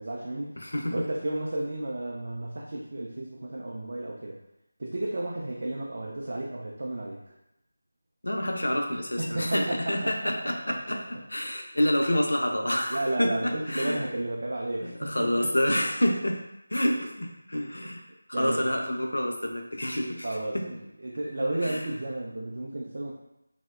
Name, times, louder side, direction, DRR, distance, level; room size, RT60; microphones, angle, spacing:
voice 1, 0.0-0.5 0.9-4.4 4.8-7.3 9.2-9.8 10.0-10.7 12.9-15.7 18.3-18.6 20.2-20.7 21.0-23.1, right 1 dB, 50° right, -3 dB, 0.3 m, -32 dB
voice 2, 0.6-1.0 8.2-11.0 11.3-14.0 14.8-16.4 16.7-18.0 18.3-20.3 20.5-20.7 21.6-21.9, equal, 70° left, 2 dB, 0.4 m, -28 dB
2.7 x 2.0 x 2.2 m, 0.86 s
figure-of-eight pair, 165°, 0 cm